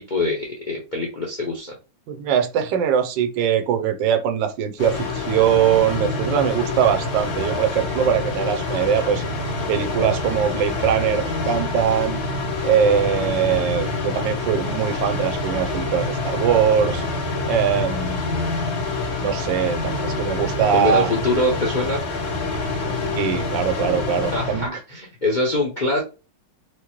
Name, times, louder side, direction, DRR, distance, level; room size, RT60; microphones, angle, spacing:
voice 1, 0.0-1.7 9.5-10.0 20.7-22.0 24.3-26.0, left 2 dB, 50° left, 0.5 m, -24 dB
voice 2, 2.1-9.2 9.7-12.2 12.6-17.0 17.4-18.3 19.2-21.1 22.9-24.7, right 8 dB, 80° right, 1.3 m, -22 dB
sound 1, 4.8-24.7, left 3 dB, 85° left, 1.8 m, -26 dB
4.7 x 2.0 x 2.9 m
omnidirectional pair, 2.0 m